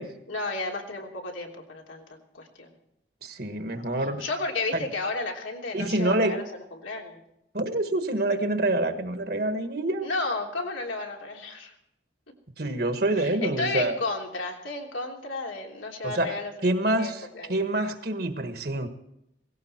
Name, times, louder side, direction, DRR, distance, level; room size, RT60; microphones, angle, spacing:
voice 1, 0.3-2.7 4.2-6.4 6.7-7.2 10.0-11.7 13.2-17.6, left 3 dB, 85° left, 0 dB, 3.2 m, -33 dB
voice 2, 3.2-4.2 4.7-4.8 5.7-6.4 7.5-10.1 12.6-14.0 16.0-18.9, right 1 dB, 50° right, 7 dB, 1.5 m, -27 dB
18.0 x 16.5 x 4.4 m, 0.79 s
head